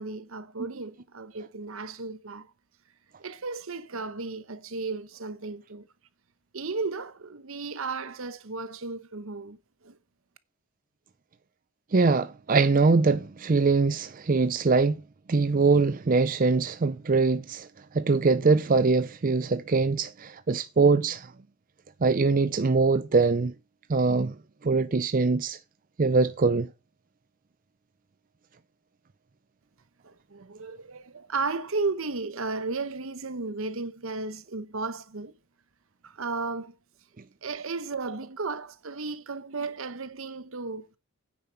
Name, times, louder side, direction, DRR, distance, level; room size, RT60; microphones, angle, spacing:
voice 1, 0.0-2.5 3.2-5.9 6.5-9.6 9.8-10.0 30.0-35.4 36.0-36.8 37.4-41.0, right 3 dB, 65° right, 0.9 m, -34 dB
voice 2, 11.9-15.0 15.3-17.7 17.9-21.3 22.0-23.5 23.9-24.3 24.6-25.6 26.0-26.7, right 4 dB, 40° right, 0.5 m, -23 dB
9.5 x 6.8 x 5.8 m
head